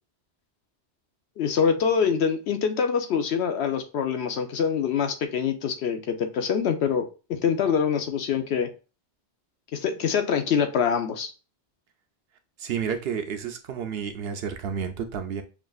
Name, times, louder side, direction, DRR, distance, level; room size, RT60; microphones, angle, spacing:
voice 1, 1.4-8.7 9.7-11.3, left 7 dB, 75° left, 7 dB, 0.9 m, -25 dB
voice 2, 12.6-15.4, right 7 dB, 70° right, 7 dB, 0.8 m, -31 dB
7.0 x 2.5 x 2.3 m, 0.34 s
omnidirectional pair, 1.1 m